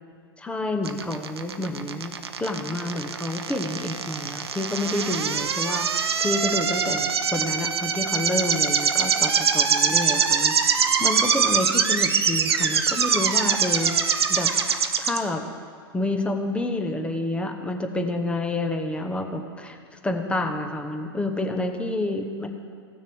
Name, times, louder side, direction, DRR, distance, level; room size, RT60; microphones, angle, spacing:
voice 1, 0.4-13.9 14.3-14.5 15.0-15.4 15.9-19.8 20.0-22.5, left 2 dB, 10° left, 5 dB, 0.9 m, -29 dB
sound 1, 0.9-15.2, right 6 dB, 85° right, 0.7 m, -23 dB
16.5 x 6.4 x 3.5 m, 2.2 s
hypercardioid pair, 115°, 13 cm